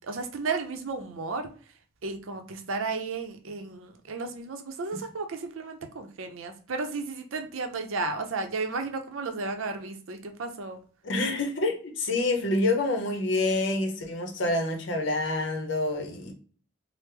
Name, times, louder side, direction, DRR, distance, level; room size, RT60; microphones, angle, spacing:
voice 1, 0.0-1.5 2.0-10.8, right 3 dB, 90° right, 0.6 m, -33 dB
voice 2, 11.0-16.3, left 2 dB, 70° left, 0.7 m, -27 dB
3.3 x 2.0 x 3.2 m
head